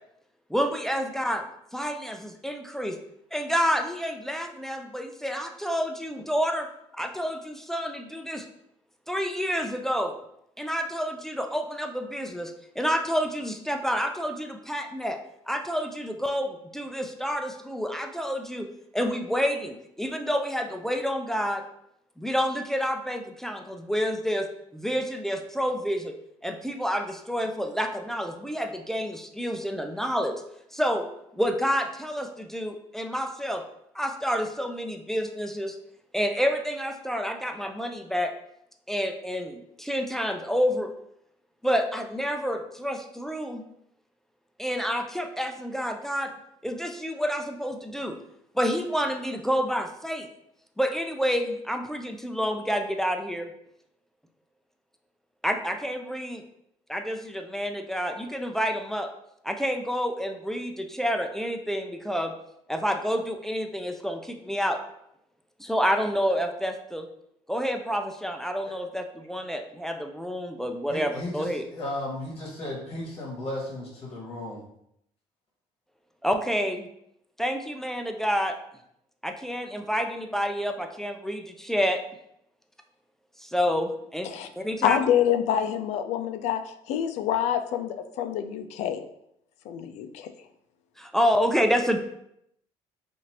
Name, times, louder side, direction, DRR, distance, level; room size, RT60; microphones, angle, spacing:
voice 1, 0.5-1.4 1.7-3.0 3.3-6.7 6.9-8.5 9.1-10.2 10.6-15.2 15.5-21.6 22.2-24.5 24.7-26.0 26.4-30.4 30.7-31.1 31.3-33.6 33.9-35.8 36.1-38.3 38.9-40.9 41.6-43.6 44.6-46.3 46.6-48.2 48.5-50.3 50.8-53.5 55.4-56.4 56.9-59.1 59.4-62.3 62.7-64.8 65.6-67.1 67.5-71.6 76.2-76.9 77.4-78.6 79.2-82.0 83.4-84.3 84.6-85.0 91.0-92.0, equal, 5° left, 4 dB, 0.4 m, -28 dB
voice 2, 70.9-74.6, left 1 dB, 45° left, -3 dB, 1.0 m, -35 dB
voice 3, 84.8-86.6 86.9-89.0 89.7-90.3, left 9 dB, 75° left, 8 dB, 0.4 m, -26 dB
3.0 x 2.5 x 2.8 m, 0.76 s
supercardioid pair, 75°, 12 cm